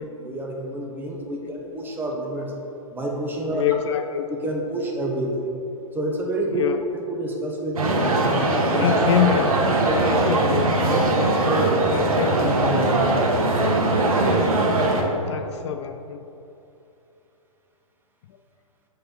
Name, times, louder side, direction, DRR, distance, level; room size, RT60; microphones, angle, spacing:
voice 1, 0.0-2.5 2.9-3.6 4.3-5.5 5.9-6.6 7.1-8.9 9.8-10.1 10.9-11.7 12.4-14.5 14.9-15.0, right 1 dB, 10° right, 0 dB, 0.9 m, -29 dB
voice 2, 3.5-4.3 6.5-6.8 8.8-9.6 9.9-10.7 11.2-11.4 11.8-12.3 14.9-16.3 18.3-18.4, left 10 dB, 55° left, 8 dB, 0.4 m, -26 dB
sound 1, 7.8-15.0, right 2 dB, 80° right, 1.2 m, -21 dB
7.6 x 3.4 x 5.7 m, 2.9 s
hypercardioid pair, 125°, 18 cm